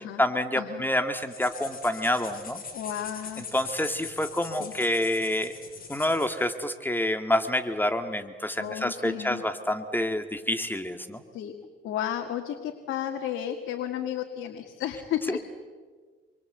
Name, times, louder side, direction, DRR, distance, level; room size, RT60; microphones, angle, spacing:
voice 1, 0.2-2.6 3.5-5.5 5.9-11.2 15.3-15.4, left 1 dB, 10° left, 8 dB, 2.0 m, -27 dB
sound 1, 1.2-6.4, left 5 dB, 45° left, 6.3 m, -42 dB
voice 2, 2.7-3.5 4.6-4.7 8.6-9.4 11.3-11.6 11.8-15.4, left 10 dB, 85° left, 4 dB, 2.0 m, -33 dB
27.5 x 23.5 x 8.1 m, 1.5 s
cardioid pair, 90°, 20 cm